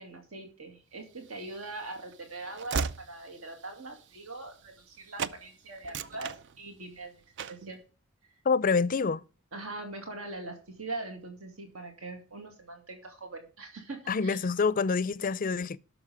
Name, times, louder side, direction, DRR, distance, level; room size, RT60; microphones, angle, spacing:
voice 1, 0.0-7.2 7.5-7.8 8.2-8.3 9.5-14.4, right 2 dB, 80° right, 2.3 m, -42 dB
Train / Slam, 1.3-4.9 5.2-5.4 5.8-7.0 7.4-7.7, right 5 dB, 60° right, 0.5 m, -37 dB
voice 2, 8.4-9.2 14.1-15.8, left 5 dB, 40° left, 0.4 m, -27 dB
12.0 x 6.3 x 5.0 m
head